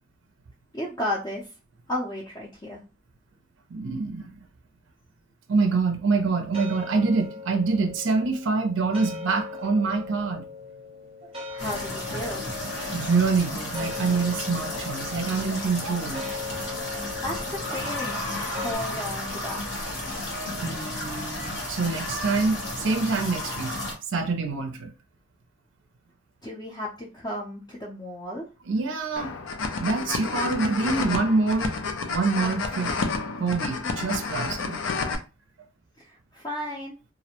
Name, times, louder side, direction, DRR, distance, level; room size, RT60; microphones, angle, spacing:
voice 1, 0.7-1.5 1.9-2.8 11.5-12.5 17.2-18.2 18.5-19.6 26.4-28.5 36.0-37.0, left 1 dB, 20° left, 0.5 m, -33 dB
voice 2, 3.7-4.4 5.5-10.4 12.9-16.2 17.0-17.1 20.6-23.7 24.1-24.9 28.7-29.3 29.8-31.8 32.1-32.9 33.4-34.8, right 4 dB, 70° right, 0.4 m, -26 dB
sound 1, 6.3-18.7, left 4 dB, 30° right, 0.7 m, -40 dB
sound 2, 11.6-23.9, left 1 dB, 65° left, 1.0 m, -33 dB
sound 3, 29.2-35.1, left 4 dB, 80° left, 0.4 m, -30 dB
2.4 x 2.0 x 2.8 m
head